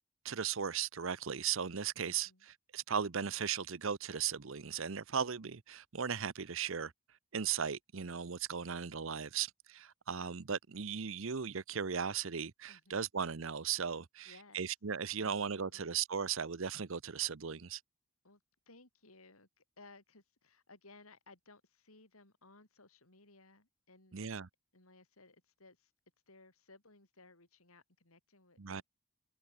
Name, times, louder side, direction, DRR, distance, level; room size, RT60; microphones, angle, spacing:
voice 1, 0.2-6.9 7.3-17.8 24.1-24.5 28.6-28.8, right 7 dB, 70° right, 0.8 m, -37 dB
voice 2, 2.1-2.5 12.7-13.1 14.3-14.6 15.2-15.9 18.2-18.4 18.7-24.3 24.7-25.9 26.3-28.8, left 3 dB, 85° left, 5.4 m, -61 dB
head